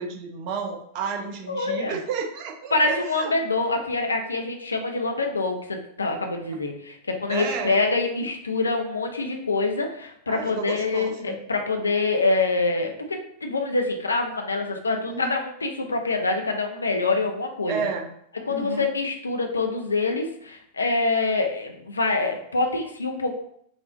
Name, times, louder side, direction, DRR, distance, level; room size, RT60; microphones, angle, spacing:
voice 1, 0.0-3.3 7.3-7.8 10.3-11.4 15.1-15.3 17.7-18.1 18.5-18.9, right 5 dB, 45° right, 2 dB, 0.8 m, -31 dB
voice 2, 1.5-2.0 2.7-17.8 18.5-23.3, left 3 dB, 75° left, 3 dB, 0.6 m, -25 dB
5.2 x 2.5 x 3.7 m, 0.69 s
figure-of-eight pair, 90°, 0 cm